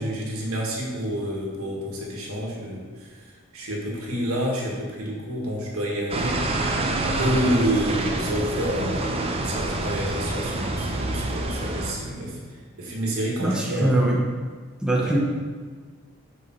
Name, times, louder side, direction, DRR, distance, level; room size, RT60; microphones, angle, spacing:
voice 1, 0.0-6.5 7.0-12.4 12.8-14.0 14.9-15.2, right 1 dB, 85° right, -2 dB, 1.7 m, -28 dB
sound 1, 6.1-11.9, right 2 dB, 30° right, 0.6 m, -27 dB
voice 2, 13.4-14.2 14.8-15.2, right 1 dB, 5° right, -4 dB, 0.9 m, -22 dB
6.8 x 4.8 x 4.4 m, 1.5 s
head